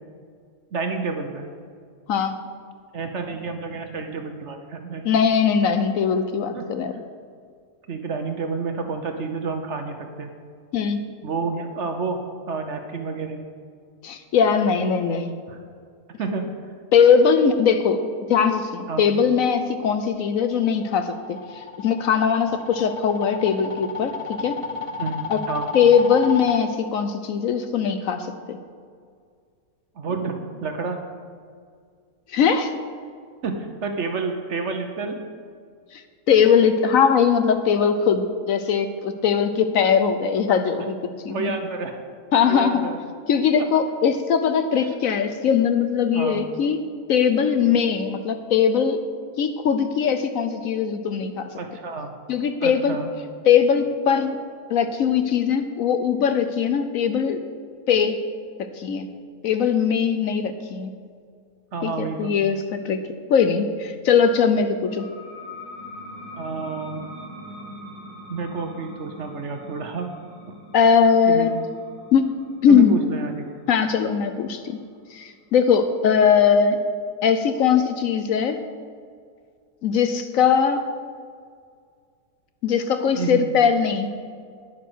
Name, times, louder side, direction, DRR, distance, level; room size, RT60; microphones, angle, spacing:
voice 1, 0.7-1.4 2.9-5.1 6.5-6.6 7.9-10.3 11.2-12.2 12.5-13.4 15.5-15.6 16.2-16.5 18.9-19.0 25.0-25.7 30.0-31.0 33.4-35.2 41.3-41.9 42.4-43.0 44.8-44.9 46.1-46.4 51.6-52.1 52.6-53.1 61.7-62.3 66.3-67.0 68.3-70.1 71.3-71.5 72.7-73.4 83.2-83.5, right 4 dB, 50° right, 5 dB, 1.1 m, -29 dB
voice 2, 5.0-6.9 10.7-11.0 14.0-15.3 16.9-18.0 18.3-21.4 21.8-24.5 25.3-25.4 25.7-28.6 32.3-32.7 35.9-36.0 36.3-41.0 41.2-41.5 42.3-42.9 43.3-46.8 47.1-49.1 49.4-51.4 52.3-53.0 53.5-54.4 54.7-57.4 57.9-58.2 58.8-59.1 59.4-60.9 61.8-63.0 63.3-65.1 70.7-71.5 72.1-72.3 72.6-72.9 73.7-74.8 75.1-76.8 77.2-78.6 79.8-80.8 82.6-84.1, left 7 dB, 65° left, 9 dB, 1.0 m, -20 dB
sound 1, 20.4-26.6, left 5 dB, 40° left, 0.4 m, -32 dB
sound 2, 64.8-76.1, left 1 dB, 15° left, 3.5 m, -43 dB
10.0 x 9.1 x 6.2 m, 2.1 s
omnidirectional pair, 1.7 m